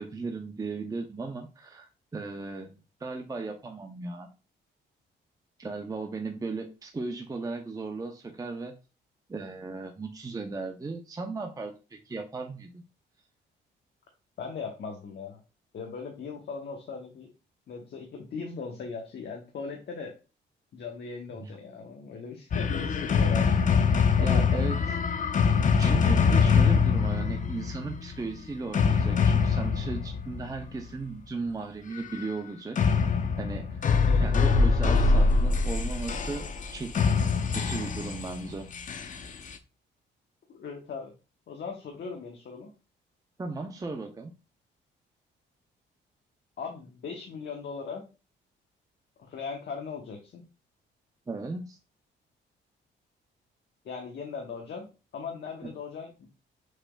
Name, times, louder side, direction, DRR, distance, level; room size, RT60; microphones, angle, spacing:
voice 1, 0.0-4.3 5.6-8.7 9.3-12.8 21.4-21.5 24.2-24.8 25.8-32.8 33.4-33.9 34.2-37.0 37.5-38.7 43.4-44.3 51.3-51.8, right 3 dB, 15° right, 4 dB, 0.7 m, -36 dB
voice 2, 14.4-15.4 15.7-17.3 17.7-20.1 20.7-23.5 23.8-24.7 34.0-34.4 40.5-41.1 41.5-42.7 46.6-48.0 49.2-50.4 53.8-54.9 55.1-56.3, left 5 dB, 60° left, 2 dB, 1.1 m, -39 dB
sound 1, 22.5-30.9 32.8-39.5, left 5 dB, 40° left, 0.6 m, -24 dB
6.5 x 3.4 x 2.3 m, 0.31 s
cardioid pair, 90°, 20 cm